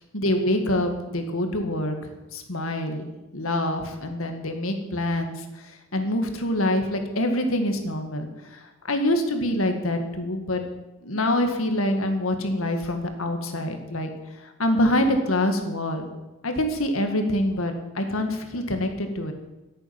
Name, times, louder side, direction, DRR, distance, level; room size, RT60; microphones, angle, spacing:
voice 1, 0.1-3.1 3.3-5.6 5.9-8.6 8.9-10.6 11.0-14.1 14.4-16.1 16.4-19.3, left 1 dB, 85° left, 5 dB, 2.0 m, -25 dB
11.5 x 8.9 x 9.4 m, 1.0 s
head